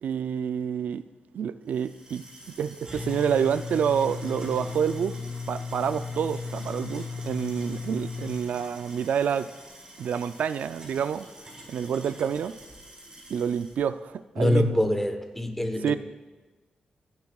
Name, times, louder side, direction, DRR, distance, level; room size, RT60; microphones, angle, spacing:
voice 1, 0.0-1.0 1.3-2.2 2.6-5.1 5.5-9.5 10.0-11.3 11.7-12.6 13.3-14.8 15.8-16.0, right 8 dB, 85° right, 13 dB, 0.3 m, -28 dB
sound 1, 1.7-13.8, left 4 dB, 30° right, 4.3 m, -38 dB
voice 2, 14.4-16.0, left 1 dB, 5° left, 6 dB, 1.1 m, -24 dB
25.0 x 9.5 x 2.4 m, 1.3 s
wide cardioid pair, 125°, 3 cm